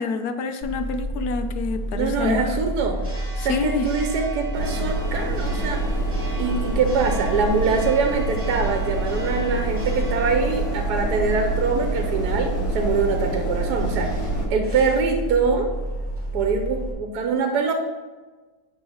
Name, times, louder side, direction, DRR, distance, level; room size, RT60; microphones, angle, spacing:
voice 1, 0.0-2.6 3.4-3.9, left 5 dB, 75° left, 8 dB, 1.2 m, -27 dB
Church bell, 0.6-16.9, right 1 dB, 10° right, 2.3 m, -30 dB
voice 2, 1.9-3.0 3.4-5.8 6.4-15.7 16.3-17.7, right 4 dB, 85° right, 4 dB, 1.4 m, -24 dB
sound 1, 4.5-14.5, right 2 dB, 60° left, 2.4 m, -28 dB
9.7 x 3.7 x 5.6 m, 1.3 s
omnidirectional pair, 1.7 m